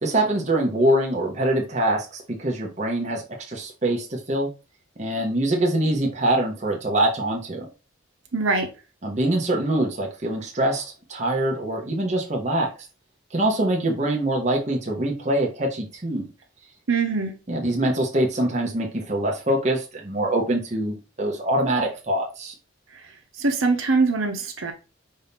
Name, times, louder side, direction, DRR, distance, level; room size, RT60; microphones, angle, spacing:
voice 1, 0.0-4.5 5.0-7.7 9.0-12.7 13.3-16.3 17.5-22.5, right 1 dB, 35° right, -1 dB, 1.0 m, -24 dB
voice 2, 8.3-8.7 16.9-17.3 23.4-24.7, right 4 dB, 90° right, 4 dB, 1.0 m, -22 dB
5.4 x 2.8 x 3.5 m, 0.31 s
head